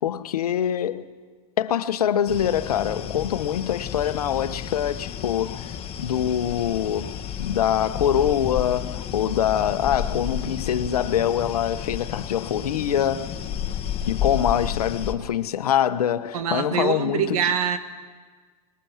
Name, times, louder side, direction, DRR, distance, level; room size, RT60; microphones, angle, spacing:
voice 1, 0.0-1.1 1.6-13.3 14.1-17.5, left 9 dB, 80° left, 1.1 m, -24 dB
sound 1, 2.3-15.1, left 9 dB, 30° left, 1.7 m, -32 dB
voice 2, 16.3-17.8, right 8 dB, 70° right, 2.1 m, -24 dB
25.0 x 20.5 x 7.4 m
hypercardioid pair, 105°, 19 cm